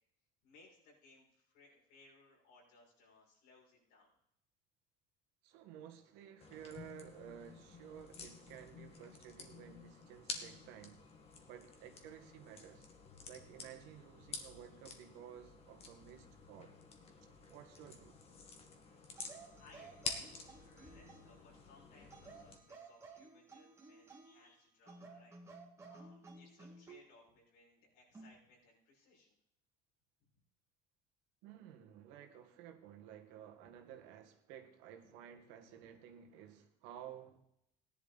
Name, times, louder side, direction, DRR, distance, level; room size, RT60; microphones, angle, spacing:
voice 1, 0.4-4.1 18.9-29.4 30.2-30.3 33.6-33.8, left 3 dB, 85° left, 6.2 m, -65 dB
voice 2, 5.4-11.1 11.5-12.9 13.2-16.7 17.5-18.2 31.4-37.4, right 9 dB, 85° right, 1.9 m, -54 dB
sound 1, 6.4-22.6, left 4 dB, 35° left, 1.9 m, -50 dB
sound 2, 19.1-21.4 22.1-24.5 24.9-27.1 28.1-28.4, right 3 dB, 15° right, 2.0 m, -56 dB
16.5 x 11.0 x 4.2 m
cardioid pair, 150°, 18 cm